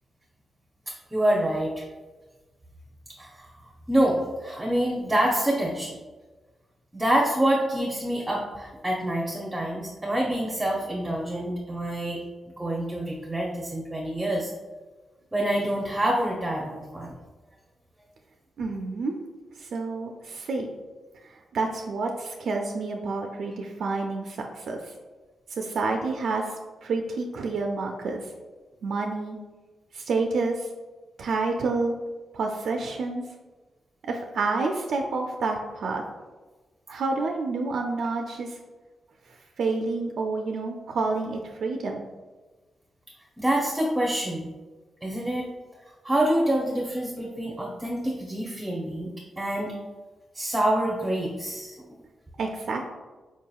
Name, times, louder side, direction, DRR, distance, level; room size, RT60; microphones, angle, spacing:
voice 1, 0.9-1.8 3.2-3.5 3.9-6.0 6.9-14.5 15.3-17.1 43.4-44.5 45.0-45.5 46.0-49.1 49.4-49.7 50.3-51.8, right 1 dB, 10° right, -2 dB, 0.6 m, -26 dB
voice 2, 18.6-19.2 19.6-20.7 21.2-24.9 25.5-26.5 26.8-28.3 28.8-29.4 29.9-30.7 31.2-32.0 32.3-33.2 34.0-36.0 36.9-38.6 39.6-42.0 52.4-52.9, right 3 dB, 75° right, 2 dB, 0.3 m, -29 dB
4.6 x 2.8 x 2.3 m, 1.2 s
cardioid pair, 95°, 0 cm